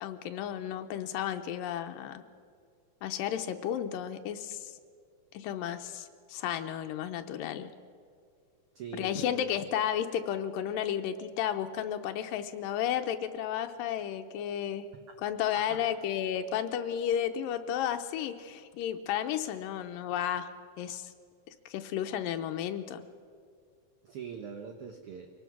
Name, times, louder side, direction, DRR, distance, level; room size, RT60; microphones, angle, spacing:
voice 1, 0.0-2.2 3.0-4.7 5.3-7.7 8.9-14.9 15.2-20.5 20.8-21.1 21.7-23.0, left 10 dB, 85° left, 7 dB, 2.4 m, -33 dB
voice 2, 8.7-9.6 15.5-15.8 24.0-25.3, right 6 dB, 70° right, 5 dB, 1.3 m, -42 dB
24.0 x 18.0 x 6.1 m, 2.1 s
omnidirectional pair, 4.0 m